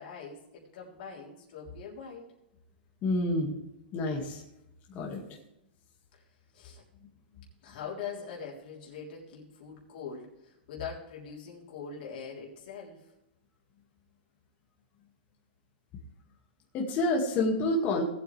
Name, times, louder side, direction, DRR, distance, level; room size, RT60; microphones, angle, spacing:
voice 1, 0.0-2.2 5.0-5.4 6.1-6.2 6.5-6.8 7.6-13.1, left 6 dB, 60° left, -4 dB, 3.4 m, -43 dB
voice 2, 3.0-3.6 3.9-4.4 4.9-5.2 16.7-18.0, left 2 dB, 30° left, -1 dB, 2.0 m, -28 dB
18.5 x 8.3 x 3.3 m, 0.90 s
hypercardioid pair, 145°, 6 cm